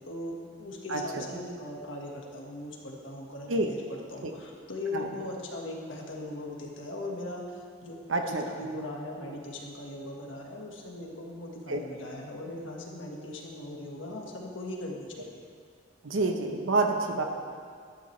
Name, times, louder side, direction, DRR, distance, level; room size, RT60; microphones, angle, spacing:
voice 1, 0.0-15.4, left 1 dB, 70° left, -1 dB, 1.6 m, -39 dB
voice 2, 0.9-1.3 3.5-3.7 4.2-4.3 4.9-5.0 8.1-8.4 11.7-11.8 16.0-17.2, right 3 dB, 80° right, 4 dB, 0.9 m, -28 dB
12.5 x 11.0 x 3.3 m, 2.1 s
head